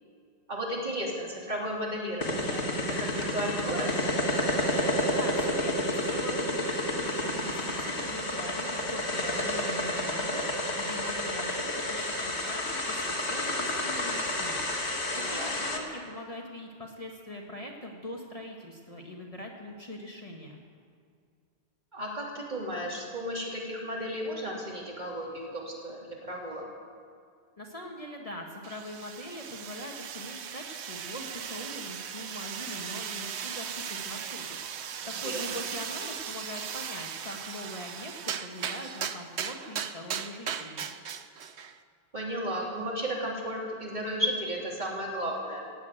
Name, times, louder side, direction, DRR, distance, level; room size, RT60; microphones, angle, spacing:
voice 1, 0.5-2.7 3.0-3.9 15.1-15.6 21.9-26.6 35.0-35.6 42.1-45.6, equal, 40° right, -3 dB, 3.4 m, -34 dB
sound 1, 2.2-15.8, left 1 dB, 70° left, 2.0 m, -30 dB
voice 2, 5.1-14.6 15.1-20.6 27.6-40.8, left 1 dB, 30° left, 0 dB, 1.6 m, -42 dB
sound 2, 28.6-41.8, right 8 dB, 75° right, 1.0 m, -37 dB
17.0 x 8.4 x 9.1 m, 2.2 s
omnidirectional pair, 1.2 m